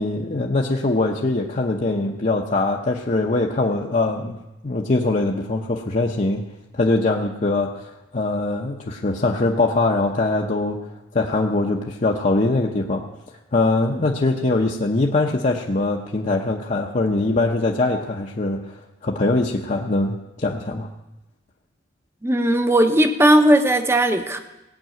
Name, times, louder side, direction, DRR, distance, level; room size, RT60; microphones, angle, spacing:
voice 1, 0.0-10.9 11.1-13.1 13.5-18.7 19.0-20.9, left 2 dB, 40° left, -1 dB, 0.8 m, -22 dB
voice 2, 22.2-24.4, right 1 dB, 15° right, 7 dB, 0.9 m, -17 dB
17.5 x 6.0 x 9.0 m, 0.98 s
head